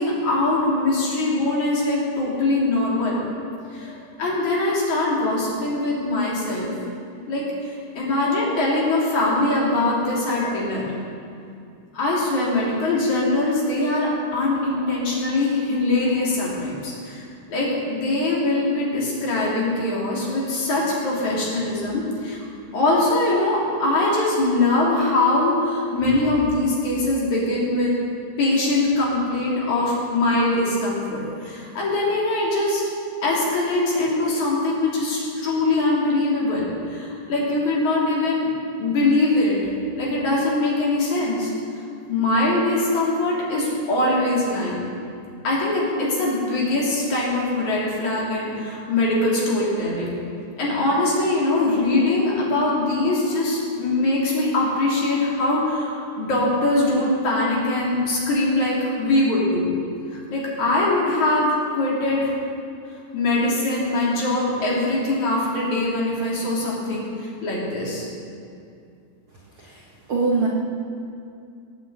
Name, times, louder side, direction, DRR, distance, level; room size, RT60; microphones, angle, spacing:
voice 1, 0.0-3.2 3.7-6.7 7.3-10.9 11.9-22.4 22.7-28.0 28.4-32.8 33.2-38.5 38.8-39.6 39.9-41.5 42.1-44.8 45.4-50.2 50.6-59.7 60.1-62.4 63.1-68.1, left 2 dB, 50° left, -5 dB, 4.4 m, -22 dB
voice 2, 69.6-70.5, right 4 dB, 60° right, -3 dB, 1.3 m, -24 dB
18.5 x 8.2 x 8.1 m, 2.5 s
omnidirectional pair, 4.6 m